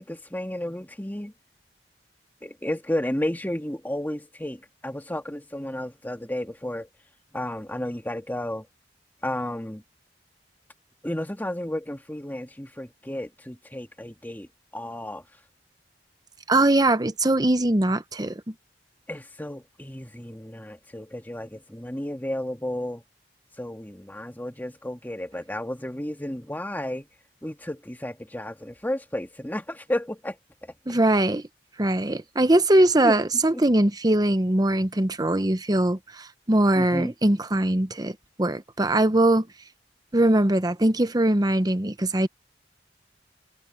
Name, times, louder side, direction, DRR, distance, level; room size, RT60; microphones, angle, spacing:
voice 1, 0.0-1.3 2.4-6.9 7.3-8.7 9.2-9.8 11.0-14.5 14.7-15.2 19.1-23.0 23.6-27.1 27.4-30.4 30.6-30.7 33.0-33.2 33.5-33.6 36.8-37.1, left 1 dB, 10° left, 2.1 m, -32 dB
voice 2, 16.5-18.3 30.9-31.4 31.8-39.5 40.1-42.3, right 1 dB, 20° right, 0.9 m, -21 dB
head